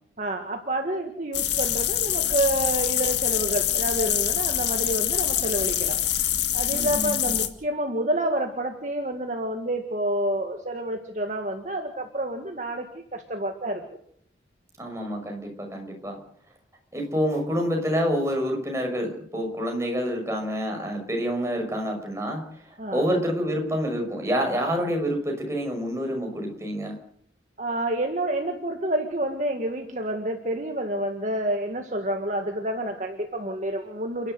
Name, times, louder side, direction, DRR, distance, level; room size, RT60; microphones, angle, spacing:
voice 1, 0.2-6.0 6.5-13.8 22.8-23.1 27.6-34.3, right 1 dB, 40° right, 4 dB, 1.9 m, -28 dB
sound 1, 1.3-7.5, left 11 dB, 70° left, 2.0 m, -25 dB
voice 2, 6.7-7.3 14.8-16.2 16.9-26.9, equal, 15° right, 2 dB, 5.8 m, -28 dB
29.5 x 11.5 x 8.0 m, 0.63 s
head